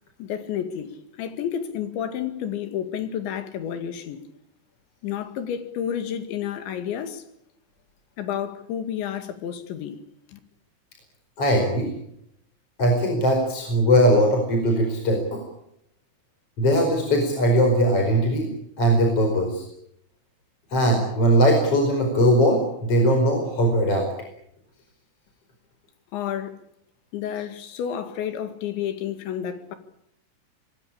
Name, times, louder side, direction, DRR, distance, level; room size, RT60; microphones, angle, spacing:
voice 1, 0.2-4.3 5.0-7.2 8.2-10.0 10.3-10.4 26.1-26.6 27.1-29.8, left 9 dB, 90° left, 4.4 m, -30 dB
voice 2, 11.4-11.9 12.8-15.4 16.6-18.5 18.8-19.6 20.7-24.1, equal, 35° left, 5.5 m, -20 dB
25.5 x 21.5 x 8.7 m
omnidirectional pair, 5.1 m